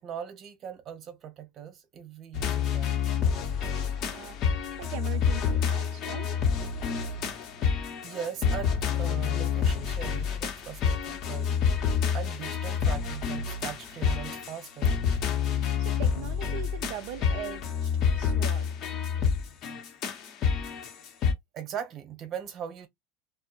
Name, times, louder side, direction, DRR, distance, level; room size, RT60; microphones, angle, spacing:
voice 1, 0.0-3.0 8.0-11.6 12.1-14.9 20.6-20.7 21.5-22.9, right 8 dB, 45° right, 0.9 m, -40 dB
sound 1, 2.3-21.3, left 7 dB, 55° left, 0.7 m, -28 dB
voice 2, 4.0-6.5 6.9-7.0 15.8-17.9 18.2-18.7, right 11 dB, 70° right, 0.3 m, -41 dB
2.1 x 2.0 x 2.9 m
hypercardioid pair, 90°, 0 cm